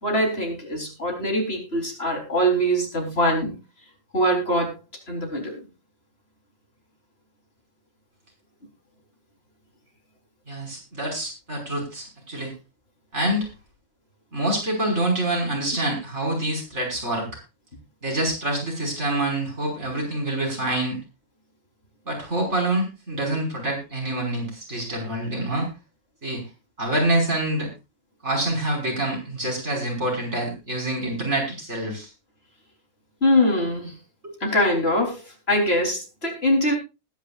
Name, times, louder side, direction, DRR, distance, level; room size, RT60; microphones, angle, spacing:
voice 1, 0.0-3.5 4.1-4.7 5.1-5.7 33.2-33.9 34.4-35.2 35.5-36.7, equal, 50° left, 1 dB, 4.3 m, -22 dB
voice 2, 10.5-12.5 13.1-13.5 14.3-17.4 18.0-21.0 22.0-25.7 26.2-26.4 26.8-27.7 28.2-32.1, right 1 dB, 60° right, 0 dB, 6.1 m, -26 dB
20.5 x 10.5 x 2.5 m, 0.27 s
omnidirectional pair, 1.3 m